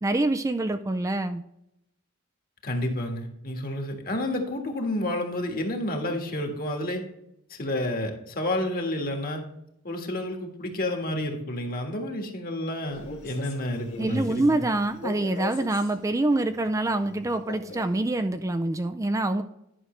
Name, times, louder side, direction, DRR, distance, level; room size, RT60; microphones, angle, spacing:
voice 1, 0.0-1.4 14.0-19.4, right 2 dB, 15° right, 7 dB, 0.4 m, -26 dB
voice 2, 2.6-7.0 7.5-9.4 9.8-14.6, left 1 dB, 45° left, 3 dB, 1.7 m, -30 dB
Male speech man speaking, 12.8-16.0 17.3-18.0, left 3 dB, 85° left, 1.9 m, -40 dB
11.0 x 6.2 x 3.2 m, 0.79 s
head